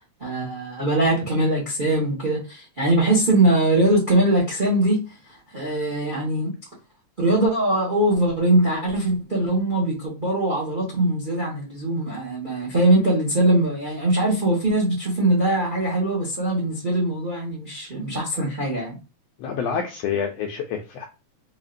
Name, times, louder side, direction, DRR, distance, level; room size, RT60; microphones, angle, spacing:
voice 1, 0.2-5.0 5.3-6.5 7.2-19.0, right 1 dB, 40° right, 0.7 m, -22 dB
voice 2, 19.4-21.1, left 6 dB, 80° left, 1.5 m, -27 dB
5.0 x 2.8 x 2.4 m
omnidirectional pair, 3.4 m